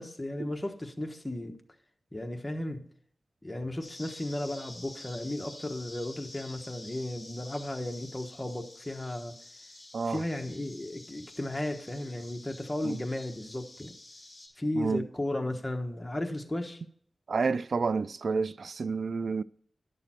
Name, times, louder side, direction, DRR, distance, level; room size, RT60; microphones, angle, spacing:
voice 1, 0.0-1.6 2.1-2.8 3.4-9.4 10.1-13.9 14.6-16.8, left 1 dB, 15° left, 1.2 m, -35 dB
sound 1, 3.8-14.5, left 2 dB, 30° left, 4.7 m, -49 dB
voice 2, 14.8-15.1 17.3-19.4, right 4 dB, 70° right, 0.3 m, -30 dB
11.0 x 6.8 x 4.3 m
wide cardioid pair, 90°, 0 cm